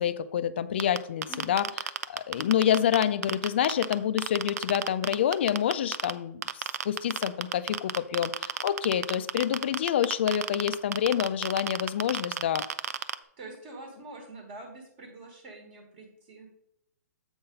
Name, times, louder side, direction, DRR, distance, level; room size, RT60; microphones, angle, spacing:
voice 1, 0.0-1.7 2.1-12.6, left 10 dB, 40° left, 14 dB, 0.4 m, -27 dB
sound 1, 0.8-6.1 6.4-13.1, right 8 dB, 65° right, 0.5 m, -30 dB
voice 2, 1.3-1.7 13.4-16.5, right 2 dB, 30° right, 2 dB, 1.3 m, -45 dB
7.8 x 4.0 x 5.2 m, 0.76 s
hypercardioid pair, 170°, 9 cm